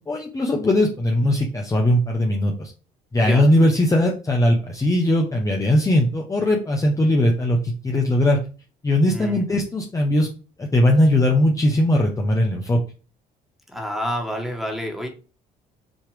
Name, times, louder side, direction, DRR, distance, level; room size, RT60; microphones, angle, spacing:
voice 1, 0.1-2.7 3.1-8.4 8.8-10.3 10.6-12.8, left 1 dB, 20° left, 0 dB, 1.0 m, -19 dB
voice 2, 9.1-9.5 13.7-15.1, equal, ahead, 2 dB, 1.8 m, -28 dB
6.2 x 3.3 x 5.1 m, 0.36 s
cardioid pair, 110°, 17 cm